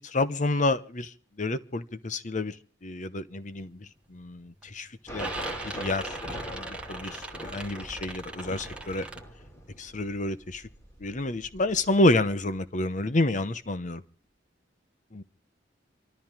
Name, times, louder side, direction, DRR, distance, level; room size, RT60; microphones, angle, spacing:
voice 1, 0.1-1.1 1.4-2.5 2.8-3.8 4.1-5.3 5.6-6.2 6.5-9.1 9.8-10.6 11.0-14.0 15.1-15.2, left 2 dB, 45° left, 1.0 m, -28 dB
sound 1, 3.5-3.7 4.1-4.6 4.9-9.2, right 3 dB, 5° right, 1.7 m, -41 dB
sound 2, 5.1-12.4, equal, 20° left, 3.0 m, -41 dB
28.0 x 13.5 x 3.7 m
head